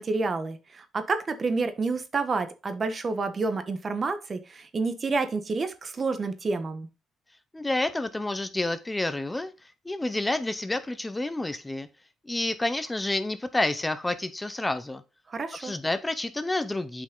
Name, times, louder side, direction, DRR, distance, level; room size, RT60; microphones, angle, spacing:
voice 1, 0.0-6.9 15.3-15.7, right 3 dB, 40° right, 10 dB, 1.4 m, -29 dB
voice 2, 7.5-9.5 9.8-11.9 12.3-15.0 15.6-17.0, left 2 dB, 15° left, 11 dB, 0.9 m, -29 dB
8.4 x 5.4 x 3.8 m, 0.29 s
cardioid pair, 90°, 0 cm